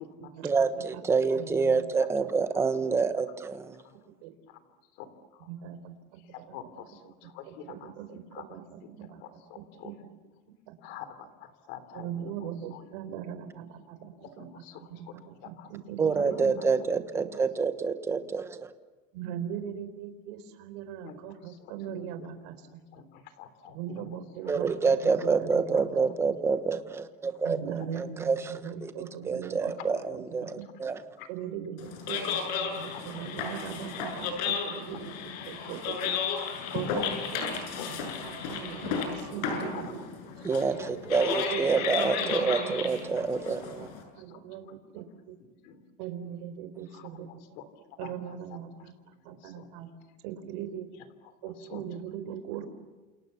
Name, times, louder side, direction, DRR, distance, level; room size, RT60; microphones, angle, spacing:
voice 1, 0.4-3.8 16.0-18.7 24.5-28.9 29.2-31.0 40.4-43.9, right 5 dB, 10° right, 9 dB, 1.2 m, -27 dB
voice 2, 1.3-1.8 2.2-2.3 4.2-4.3 5.5-6.6 7.5-9.2 9.6-10.2 10.7-10.8 11.9-16.6 18.1-18.2 19.1-22.8 23.7-24.7 25.0-26.3 27.4-30.6 31.3-36.1 36.7-40.1 40.5-40.9 41.5-43.2 43.6-43.9 44.2-45.3 46.0-47.3 48.0-48.9 49.2-49.9 50.2-50.9 51.4-52.7, right 9 dB, 75° right, 9 dB, 4.3 m, -40 dB
voice 3, 5.0-5.5 6.3-7.9 8.3-8.4 9.2-9.9 10.8-11.1 11.4-12.8 14.2-15.1 15.6-15.7 16.2-16.3 17.2-17.3 21.0-21.2 21.5-22.3 22.9-24.2 25.7-25.8 27.8-27.9 31.2-31.3 32.9-33.2 33.9-34.0 34.9-35.0 35.6-35.8 36.6-37.9 39.7-39.9 40.5-40.9 41.8-42.1 44.3-44.7 45.6-45.8 46.9-48.4 49.3-49.7 50.9-51.1 51.4-51.8 52.2-52.3, left 9 dB, 55° left, 11 dB, 3.5 m, -47 dB
sound 1, 31.8-44.0, left 6 dB, 85° left, 7.5 m, -33 dB
29.5 x 28.5 x 7.1 m, 1.2 s
cardioid pair, 180°, 21 cm